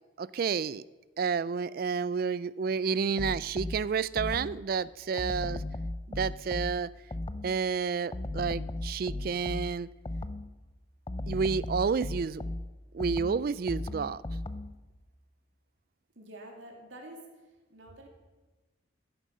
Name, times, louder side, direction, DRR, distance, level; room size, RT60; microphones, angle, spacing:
voice 1, 0.2-0.8 1.2-5.6 6.1-6.9 7.4-9.9 11.3-12.4 12.9-14.2, right 5 dB, 50° right, 19 dB, 0.3 m, -30 dB
sound 1, 3.2-4.7 5.2-7.7 8.1-10.6 11.1-14.8, left 2 dB, 25° left, 0.5 m, -37 dB
voice 2, 16.2-17.2 17.7-18.1, right 1 dB, 85° right, 1 dB, 2.9 m, -47 dB
15.5 x 10.0 x 5.5 m, 1.2 s
head